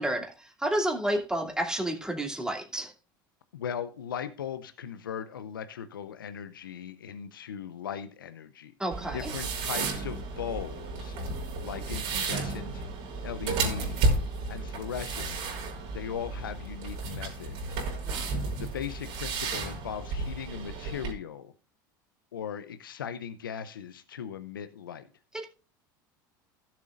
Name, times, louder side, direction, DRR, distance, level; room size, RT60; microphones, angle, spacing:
voice 1, 0.0-2.9 8.8-9.3 18.1-18.4 25.3-25.4, right 1 dB, 5° right, 2.5 m, -31 dB
voice 2, 3.5-8.7 9.1-11.2 11.6-12.8 13.2-14.0 14.5-15.4 15.9-17.9 18.3-21.5 22.3-25.1, left 8 dB, 90° left, 0.6 m, -38 dB
sound 1, 8.9-21.1, right 3 dB, 60° right, 4.3 m, -32 dB
16.0 x 7.4 x 2.5 m
hypercardioid pair, 80°, 11 cm